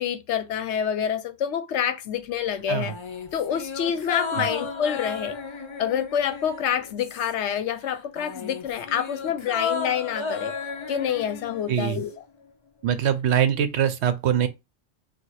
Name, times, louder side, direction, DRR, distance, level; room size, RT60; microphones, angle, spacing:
voice 1, 0.0-2.9 3.3-5.4 5.8-10.5 10.9-12.1, left 9 dB, 70° left, 0.9 m, -27 dB
sound 1, 2.8-7.6 7.8-12.2 12.4-12.5, left 5 dB, 50° left, 0.3 m, -34 dB
voice 2, 11.7-12.0 12.8-14.5, right 9 dB, 70° right, 0.8 m, -23 dB
4.1 x 2.3 x 4.6 m
omnidirectional pair, 1.2 m